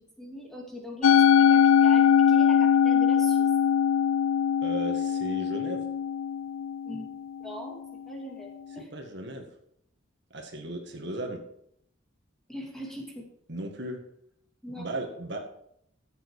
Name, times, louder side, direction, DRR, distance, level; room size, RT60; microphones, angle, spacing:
voice 1, 0.0-3.5 6.9-7.1 7.4-7.8 8.1-8.9 12.5-13.3 14.6-14.9, equal, ahead, -1 dB, 2.4 m, -40 dB
Musical instrument, 1.0-7.4, left 8 dB, 80° left, 0.4 m, -22 dB
voice 2, 4.6-5.9 8.9-9.5 10.3-11.4 13.5-14.0 14.8-15.4, right 1 dB, 55° right, 3 dB, 1.9 m, -36 dB
14.5 x 7.9 x 4.8 m, 0.71 s
head